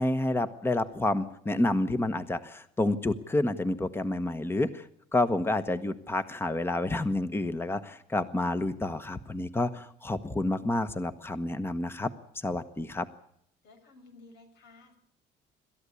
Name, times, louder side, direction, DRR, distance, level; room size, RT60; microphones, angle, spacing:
voice 1, 0.0-13.1, left 2 dB, 15° left, 12 dB, 1.1 m, -29 dB
voice 2, 13.6-15.0, left 3 dB, 85° left, 6 dB, 6.4 m, -54 dB
27.0 x 13.5 x 8.4 m, 0.70 s
cardioid pair, 110°, 17 cm